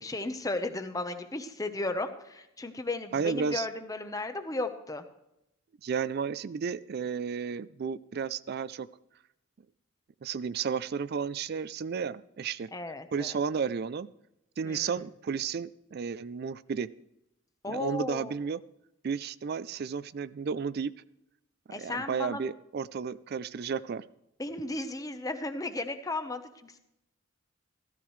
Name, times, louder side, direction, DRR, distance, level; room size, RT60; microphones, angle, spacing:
voice 1, 0.0-5.0 12.7-13.4 14.6-14.9 17.6-18.3 21.7-22.4 24.4-26.8, left 2 dB, 15° left, 8 dB, 0.8 m, -35 dB
voice 2, 3.1-3.7 5.8-8.9 10.2-12.7 13.1-14.1 14.6-16.9 17.7-18.6 19.0-20.9 21.8-24.0, right 6 dB, 50° right, 17 dB, 0.4 m, -32 dB
15.0 x 13.5 x 3.2 m, 0.84 s
head